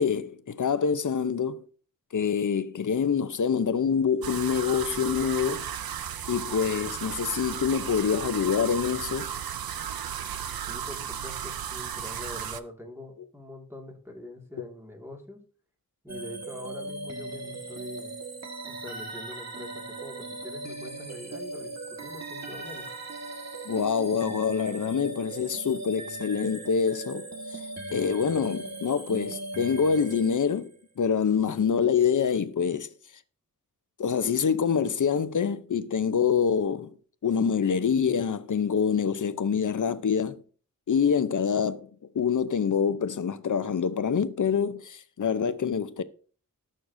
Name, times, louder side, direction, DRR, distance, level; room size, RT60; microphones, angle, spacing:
voice 1, 0.0-1.6 2.1-5.7 6.3-9.3 23.6-27.6 27.9-32.9 34.0-36.9 37.2-40.4 40.9-41.9 42.1-46.0, left 6 dB, 60° left, 0.7 m, -26 dB
sound 1, 4.2-12.6, right 8 dB, 85° right, 0.6 m, -35 dB
voice 2, 10.7-15.4 16.0-18.1 18.7-21.7 22.0-22.9, left 1 dB, 5° right, 2.1 m, -44 dB
sound 2, 16.1-30.8, right 2 dB, 50° right, 1.6 m, -39 dB
18.5 x 6.5 x 2.7 m
wide cardioid pair, 75°, 35 cm